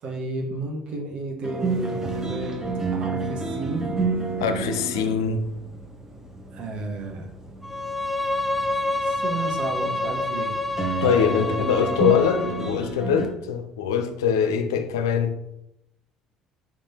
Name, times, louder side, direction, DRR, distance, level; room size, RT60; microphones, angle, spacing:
voice 1, 0.0-2.5 2.9-4.0 6.5-7.3 8.9-10.5, right 2 dB, 55° right, 1.2 m, -32 dB
sound 1, 1.4-13.3, right 3 dB, 25° right, 0.9 m, -31 dB
voice 2, 4.4-5.5 11.0-15.4, left 7 dB, 90° left, 0.4 m, -23 dB
Bowed string instrument, 7.6-12.8, left 2 dB, 5° right, 0.5 m, -28 dB
5.0 x 3.4 x 2.9 m
hypercardioid pair, 65°, 2 cm